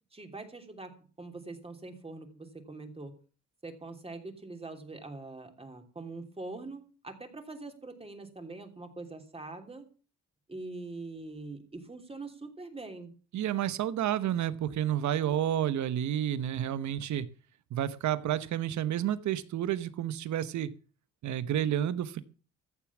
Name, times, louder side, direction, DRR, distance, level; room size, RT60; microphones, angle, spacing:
voice 1, 0.1-3.1 3.6-9.9 10.5-13.1, right 3 dB, 20° right, 5 dB, 3.1 m, -43 dB
voice 2, 13.3-17.3 17.7-20.7 21.2-22.2, right 11 dB, 70° right, 14 dB, 1.1 m, -30 dB
14.5 x 7.4 x 7.2 m, 0.38 s
cardioid pair, 90°, 30 cm